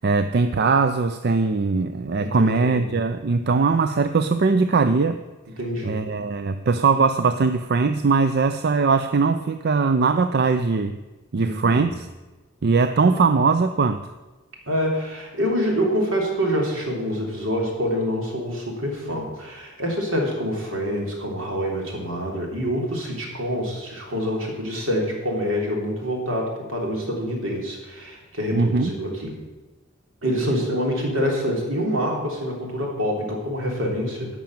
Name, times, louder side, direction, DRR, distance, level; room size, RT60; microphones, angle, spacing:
voice 1, 0.0-5.2 5.8-11.0 11.3-12.1 12.6-14.1 28.5-28.9, right 4 dB, 50° right, 10 dB, 0.5 m, -20 dB
voice 2, 2.2-2.9 5.6-6.0 11.4-11.9 14.7-29.4 30.2-34.4, equal, 75° right, 0 dB, 3.3 m, -26 dB
11.5 x 6.2 x 8.9 m, 1.2 s
head